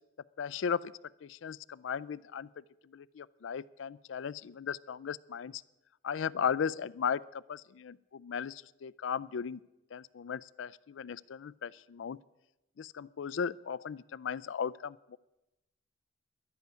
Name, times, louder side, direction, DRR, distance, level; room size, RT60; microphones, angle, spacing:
voice 1, 0.4-0.9 1.2-2.5 2.9-5.6 6.0-9.6 9.9-12.2 12.8-15.2, left 7 dB, 75° left, 19 dB, 0.4 m, -36 dB
11.5 x 8.1 x 9.5 m, 0.94 s
head